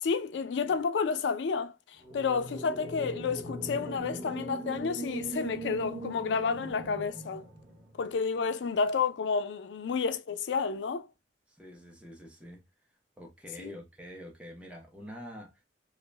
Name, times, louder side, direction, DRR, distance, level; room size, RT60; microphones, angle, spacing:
voice 1, 0.0-1.8 2.1-7.5 8.0-11.1 13.6-13.7, left 5 dB, 75° left, 0.4 m, -30 dB
sound 1, 2.0-8.2, right 1 dB, 75° right, 0.9 m, -40 dB
voice 2, 11.5-12.6 13.2-15.5, equal, 5° right, 0.6 m, -46 dB
2.4 x 2.0 x 3.2 m
head